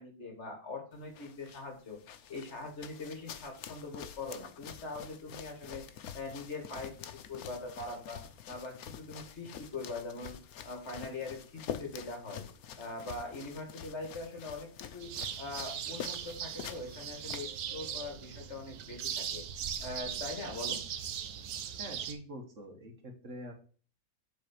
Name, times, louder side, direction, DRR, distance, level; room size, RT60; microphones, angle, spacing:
voice 1, 0.0-2.0 2.3-10.4 10.6-12.5 12.8-19.4 19.8-20.8, left 3 dB, 50° left, 3 dB, 2.1 m, -42 dB
sound 1, 0.9-17.9, left 9 dB, 75° left, 1.2 m, -47 dB
sound 2, 15.0-22.1, right 8 dB, 85° right, 1.3 m, -39 dB
voice 2, 21.8-23.5, equal, 55° right, 3 dB, 1.8 m, -45 dB
8.0 x 4.0 x 5.9 m, 0.39 s
omnidirectional pair, 1.6 m